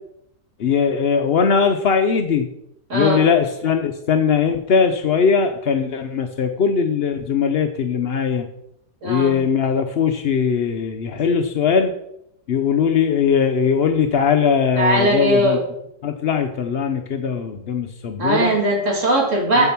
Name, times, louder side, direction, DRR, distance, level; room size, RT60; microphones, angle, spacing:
voice 1, 0.6-2.5 2.9-8.5 9.0-11.9 12.5-15.6 16.0-18.5 19.6-19.7, left 6 dB, 65° left, 6 dB, 0.6 m, -20 dB
voice 2, 2.9-3.3 9.0-9.4 14.8-15.6 18.2-19.7, right 1 dB, 45° right, 0 dB, 2.4 m, -19 dB
7.8 x 7.2 x 5.9 m, 0.80 s
omnidirectional pair, 1.9 m